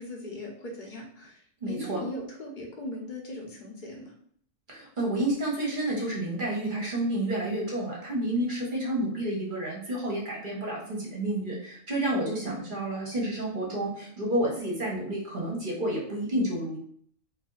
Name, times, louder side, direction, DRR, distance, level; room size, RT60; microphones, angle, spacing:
voice 1, 0.0-1.4 1.7-4.1, left 1 dB, 45° left, -2 dB, 0.8 m, -39 dB
voice 2, 1.6-2.0 4.7-16.8, right 1 dB, 45° right, -3 dB, 0.9 m, -30 dB
2.6 x 2.5 x 3.8 m, 0.62 s
omnidirectional pair, 1.4 m